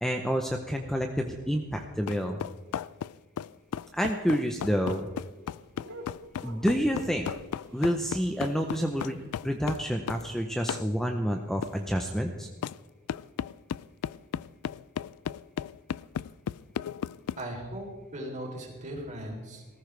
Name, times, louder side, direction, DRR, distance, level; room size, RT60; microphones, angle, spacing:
voice 1, 0.0-2.4 3.9-5.1 6.4-7.3 7.7-9.2 9.4-12.5, equal, ahead, 4 dB, 0.7 m, -28 dB
sound 1, 2.1-10.3 10.7-10.9 11.6-11.8 12.6-12.8 13.1-17.4, left 8 dB, 90° left, 0.3 m, -35 dB
sound 2, 3.6-9.3, right 1 dB, 85° right, 3.8 m, -51 dB
voice 2, 17.4-19.7, right 1 dB, 35° right, 0 dB, 3.6 m, -38 dB
19.5 x 14.5 x 3.4 m, 1.3 s
head